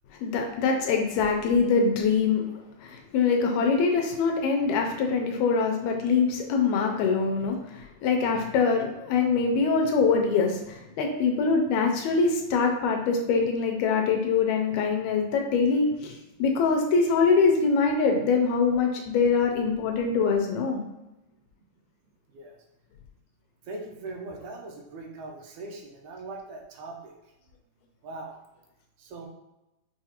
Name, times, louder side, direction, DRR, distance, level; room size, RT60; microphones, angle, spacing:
voice 1, 0.2-20.8, left 5 dB, 80° left, 2 dB, 1.8 m, -24 dB
voice 2, 23.7-27.1 28.0-28.4 29.0-29.3, right 2 dB, 80° right, 1 dB, 1.9 m, -40 dB
6.0 x 2.4 x 2.8 m, 0.95 s
omnidirectional pair, 3.4 m